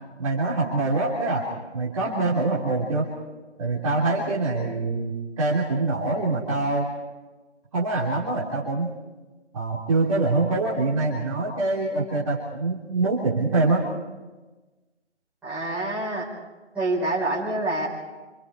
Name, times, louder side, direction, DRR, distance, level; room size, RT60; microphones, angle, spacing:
voice 1, 0.2-1.5 1.7-3.1 3.6-5.1 5.4-6.9 7.7-8.9 9.5-13.8, right 3 dB, 30° right, -5 dB, 3.5 m, -24 dB
voice 2, 15.4-16.3 16.7-17.9, right 2 dB, 5° right, -9 dB, 4.9 m, -26 dB
27.5 x 27.0 x 4.8 m, 1.2 s
figure-of-eight pair, 160°, 35 cm